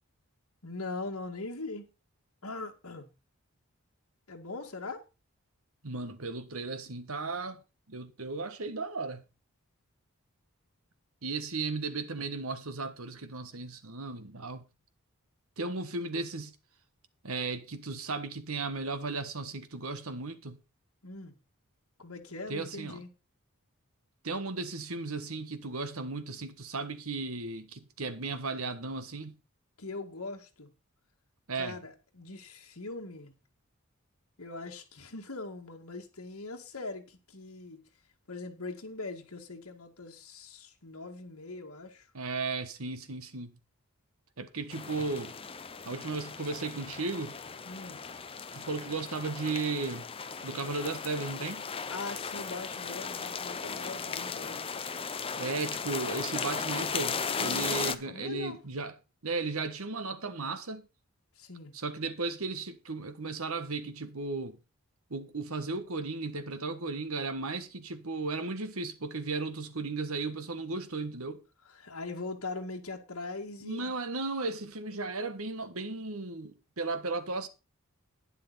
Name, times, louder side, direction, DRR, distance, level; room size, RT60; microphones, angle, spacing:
voice 1, 0.6-1.9 2.4-3.1 4.3-5.1 21.0-21.3 22.0-23.1 29.8-30.7 31.5-33.3 34.4-37.8 38.3-42.1 47.7-48.0 51.9-54.7 58.0-58.6 61.4-61.7 71.7-73.8, left 3 dB, 70° left, 2.2 m, -41 dB
voice 2, 5.8-7.6 7.9-9.2 11.2-14.6 15.6-16.5 17.2-20.6 22.5-23.0 24.2-29.3 31.5-31.8 42.1-43.6 44.4-45.3 45.8-47.4 48.5-50.1 50.4-51.6 55.4-58.9 59.2-60.9 61.7-64.6 65.1-71.4 73.6-77.5, right 3 dB, 70° right, 1.5 m, -35 dB
sound 1, 44.7-57.9, left 5 dB, 25° left, 0.7 m, -36 dB
11.5 x 9.9 x 4.2 m
head